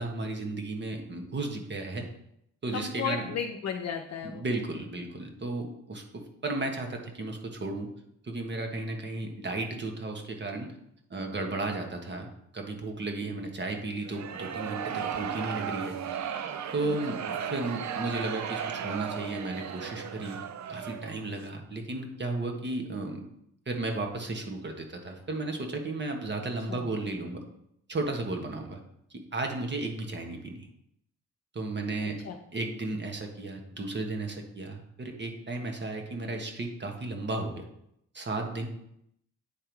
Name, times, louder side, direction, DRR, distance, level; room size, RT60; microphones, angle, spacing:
voice 1, 0.0-2.0 2.6-3.2 4.2-7.9 8.2-10.7 11.1-16.0 16.7-20.4 20.7-23.2 23.7-27.4 27.9-28.8 29.1-30.7 31.5-32.2 32.5-37.6 38.1-38.7, right 2 dB, 35° right, 3 dB, 1.3 m, -34 dB
voice 2, 2.7-4.4 16.8-17.2 26.7-26.9 32.0-32.4, left 7 dB, 55° left, 3 dB, 0.8 m, -35 dB
sound 1, 14.0-21.2, right 8 dB, 60° right, 0.6 m, -35 dB
8.6 x 3.5 x 4.6 m, 0.76 s
cardioid pair, 90°, 32 cm